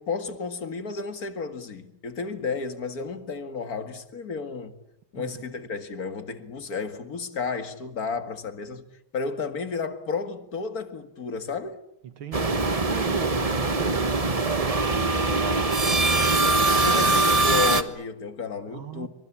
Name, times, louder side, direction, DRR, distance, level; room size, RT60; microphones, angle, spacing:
voice 1, 0.0-4.8 5.1-8.9 9.1-11.8 16.8-19.1, left 5 dB, 45° left, 2.3 m, -32 dB
voice 2, 5.1-5.5 12.0-17.3 18.7-19.1, right 7 dB, 70° right, 2.4 m, -37 dB
sound 1, 12.3-17.8, right 3 dB, 25° right, 0.9 m, -22 dB
27.0 x 24.5 x 8.7 m
omnidirectional pair, 2.4 m